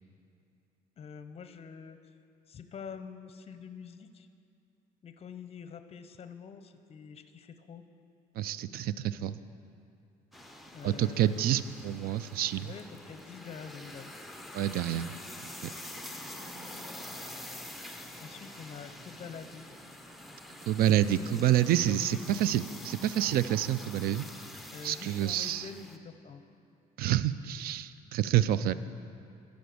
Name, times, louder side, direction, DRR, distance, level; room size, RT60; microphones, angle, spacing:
voice 1, 1.0-2.0 2.5-4.3 5.0-7.8 10.7-11.6 12.6-14.1 18.2-19.6 21.2-21.6 21.9-22.4 24.7-26.4, left 6 dB, 35° left, 9 dB, 0.6 m, -46 dB
voice 2, 8.4-9.4 10.8-12.7 14.5-15.1 20.7-24.3 24.8-25.6 27.0-28.7, right 11 dB, 65° right, 15 dB, 0.4 m, -28 dB
sound 1, 10.3-26.0, left 1 dB, ahead, 0.6 m, -46 dB
12.5 x 5.2 x 6.8 m, 2.6 s
cardioid pair, 110°, 17 cm